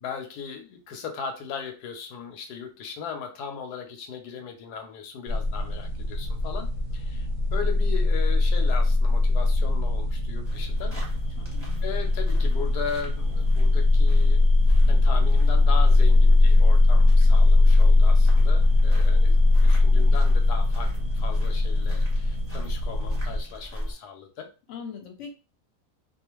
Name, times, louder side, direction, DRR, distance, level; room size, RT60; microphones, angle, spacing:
voice 1, 0.0-11.0 11.8-14.5 14.9-24.5, left 6 dB, 85° left, 4 dB, 1.1 m, -38 dB
sound 1, 5.3-23.4, left 2 dB, 65° right, 0.8 m, -20 dB
A Night in Italy, 10.4-23.9, equal, 10° right, 0.9 m, -37 dB
voice 2, 11.4-11.9 24.7-25.3, left 5 dB, 60° left, 3 dB, 0.9 m, -40 dB
2.4 x 2.4 x 2.9 m, 0.32 s
omnidirectional pair, 1.7 m